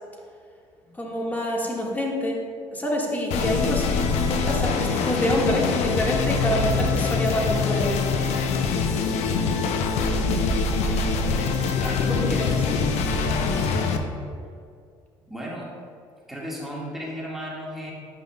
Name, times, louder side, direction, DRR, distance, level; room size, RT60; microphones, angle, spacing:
voice 1, 0.9-2.4 2.7-3.9 4.1-8.1 12.1-12.6, left 1 dB, 15° left, -2 dB, 1.6 m, -27 dB
sound 1, 3.3-14.0, left 4 dB, 70° left, 0.7 m, -24 dB
voice 2, 11.8-12.6 15.2-15.7 16.3-17.9, equal, ahead, -5 dB, 1.7 m, -35 dB
10.0 x 5.6 x 2.2 m, 2.3 s
supercardioid pair, 70°, 12 cm